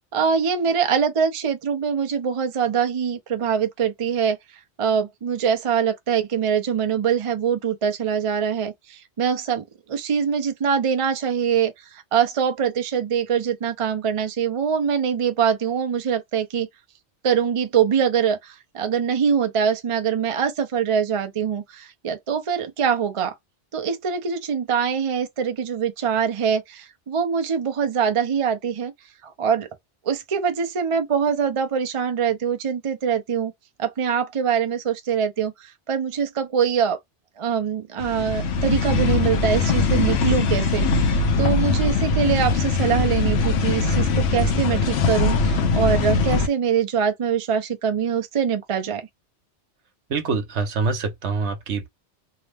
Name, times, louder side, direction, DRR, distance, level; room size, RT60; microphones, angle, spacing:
voice 1, 0.1-4.4 4.8-11.7 12.1-16.7 17.2-23.3 23.7-28.9 29.2-29.7 30.1-33.5 33.8-37.0 37.4-49.1, right 7 dB, 40° right, 0.5 m, -23 dB
sound 1, 38.0-46.5, left 4 dB, 65° left, 0.9 m, -21 dB
voice 2, 50.1-51.9, right 4 dB, 75° right, 1.1 m, -25 dB
2.9 x 2.0 x 3.3 m
omnidirectional pair, 1.2 m